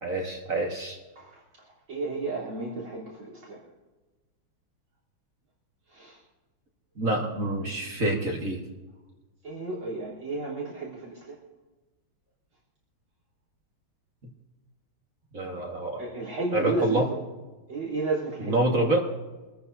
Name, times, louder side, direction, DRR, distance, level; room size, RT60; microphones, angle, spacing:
voice 1, 0.0-1.0 7.0-8.6 15.3-16.0 16.5-17.1 18.4-19.0, right 1 dB, 40° right, 0 dB, 1.8 m, -26 dB
voice 2, 1.2-3.6 5.9-6.2 7.7-7.8 9.4-11.4 16.0-17.2 17.7-18.6, right 3 dB, 75° right, -4 dB, 4.3 m, -33 dB
25.0 x 14.0 x 2.7 m, 1.2 s
omnidirectional pair, 2.3 m